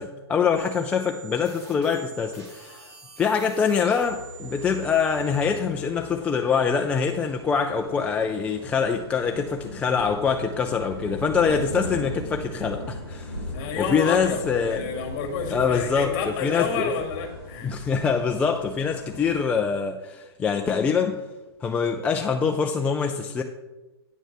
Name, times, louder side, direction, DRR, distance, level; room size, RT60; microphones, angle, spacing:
voice 1, 0.0-2.9 3.2-13.5 13.8-14.8 15.5-16.9 17.6-21.2 21.6-23.4, left 6 dB, 10° left, 3 dB, 0.3 m, -24 dB
sound 1, 0.5-5.6, right 6 dB, 85° right, 2.8 m, -46 dB
sound 2, 4.0-19.4, equal, 65° right, 3.5 m, -39 dB
voice 2, 13.5-17.8, left 5 dB, 35° left, 4 dB, 1.8 m, -30 dB
9.1 x 4.5 x 6.7 m, 1.1 s
hypercardioid pair, 150°, 14 cm